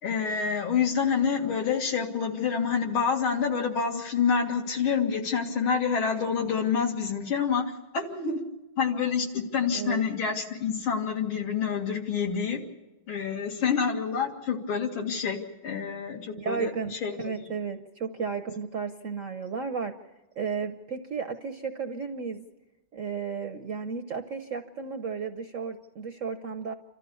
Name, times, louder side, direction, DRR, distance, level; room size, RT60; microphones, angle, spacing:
voice 1, 0.0-8.4 8.8-12.6 13.1-17.1, left 6 dB, 80° left, 2 dB, 2.9 m, -27 dB
voice 2, 16.4-19.9 20.4-22.5 22.9-26.7, right 5 dB, 60° right, 7 dB, 0.8 m, -33 dB
28.0 x 13.0 x 6.9 m, 1.1 s
omnidirectional pair, 2.2 m